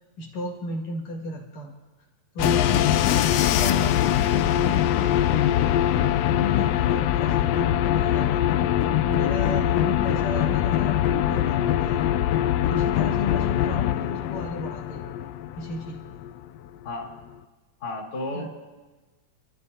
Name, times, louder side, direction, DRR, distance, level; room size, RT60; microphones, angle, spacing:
voice 1, 0.2-1.7 2.3-8.7 9.0-12.1 12.7-15.1 15.5-16.0 18.3-18.5, left 3 dB, 65° left, -1 dB, 3.3 m, -33 dB
sound 1, 2.4-16.3, left 11 dB, 90° left, 1.4 m, -23 dB
voice 2, 17.8-18.7, left 2 dB, 45° left, -3 dB, 3.0 m, -34 dB
29.5 x 13.0 x 2.8 m, 1.2 s
omnidirectional pair, 3.4 m